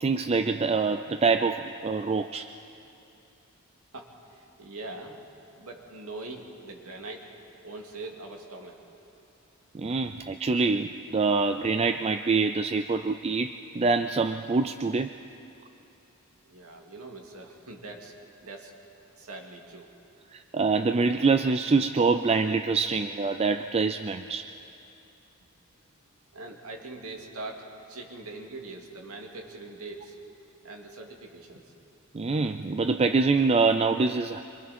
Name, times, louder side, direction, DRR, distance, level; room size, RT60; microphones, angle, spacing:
voice 1, 0.0-2.5 9.7-15.1 20.3-24.5 32.1-34.4, right 4 dB, 30° right, 8 dB, 0.4 m, -25 dB
voice 2, 3.9-5.2 5.6-7.3 7.6-8.8 16.4-18.1 18.4-18.7 19.2-19.9 26.3-27.6 27.9-30.2 30.6-31.7, right 2 dB, 80° right, 1 dB, 2.3 m, -42 dB
25.5 x 25.0 x 4.3 m, 2.8 s
head